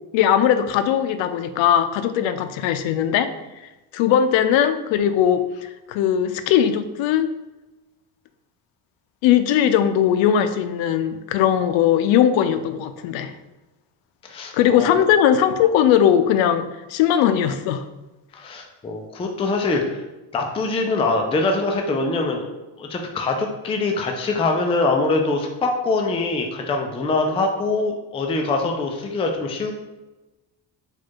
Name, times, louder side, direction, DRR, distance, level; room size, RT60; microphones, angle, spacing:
voice 1, 0.1-3.3 3.9-7.3 9.2-13.3 14.5-17.8, left 9 dB, 85° left, 11 dB, 0.5 m, -19 dB
voice 2, 14.2-14.9 18.3-20.0 20.3-22.5 22.8-29.8, left 3 dB, 15° left, 2 dB, 0.3 m, -23 dB
4.5 x 2.4 x 4.5 m, 1.1 s
cardioid pair, 140°, 44 cm